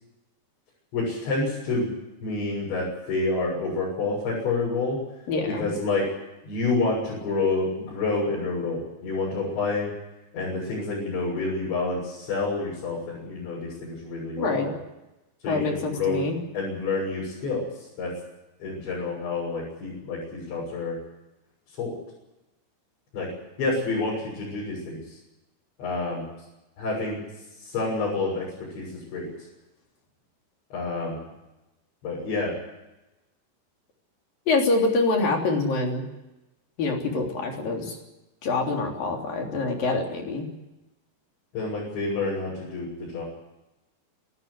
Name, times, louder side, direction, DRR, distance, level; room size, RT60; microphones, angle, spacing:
voice 1, 0.9-1.9 2.2-5.0 5.5-6.1 6.4-9.9 10.3-14.7 15.4-16.2 16.5-17.6 18.0-18.1 18.6-21.0 21.8-21.9 23.1-23.3 23.6-25.2 25.8-26.2 26.8-27.2 27.6-29.3 30.7-31.2 32.0-32.5 41.5-43.2, left 3 dB, 70° left, -5 dB, 9.2 m, -28 dB
voice 2, 5.3-5.7 14.4-14.7 15.5-16.4 34.5-36.0 36.8-38.0 38.4-40.5, left 3 dB, 50° left, 2 dB, 4.8 m, -25 dB
27.0 x 13.5 x 9.8 m, 0.99 s
omnidirectional pair, 5.4 m